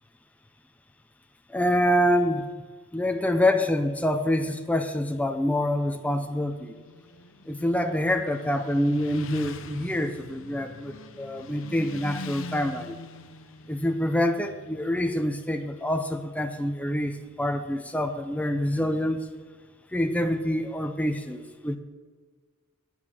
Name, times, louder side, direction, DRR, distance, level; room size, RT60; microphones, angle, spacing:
voice 1, 1.5-2.5 2.9-6.7 7.5-13.0 13.7-19.2 19.9-21.8, left 1 dB, 5° left, 6 dB, 0.5 m, -26 dB
Motorcycle, 6.4-16.2, left 3 dB, 65° left, 0.7 m, -43 dB
9.4 x 7.3 x 7.0 m, 1.5 s
head